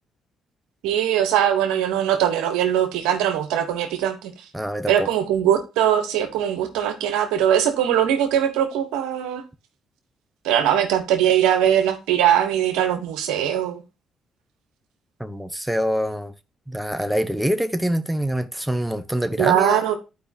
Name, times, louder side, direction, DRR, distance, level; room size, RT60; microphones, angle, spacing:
voice 1, 0.8-4.3 4.9-9.4 10.4-13.8 19.4-20.0, right 10 dB, 85° right, 1.1 m, -21 dB
voice 2, 4.5-5.1 15.2-16.3 16.7-19.8, equal, 5° right, 0.8 m, -25 dB
11.5 x 5.0 x 2.8 m
supercardioid pair, 55°, 0 cm